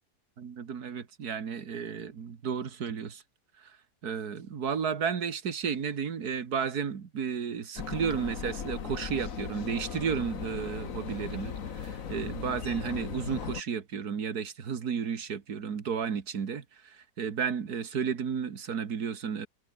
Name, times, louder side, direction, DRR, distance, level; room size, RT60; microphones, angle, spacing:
voice 1, 0.4-3.2 3.6-3.7 4.0-19.5, right 7 dB, 65° right, 2.2 m, -33 dB
sound 1, 7.8-13.6, left 7 dB, 55° left, 1.7 m, -38 dB
omnidirectional pair, 1.8 m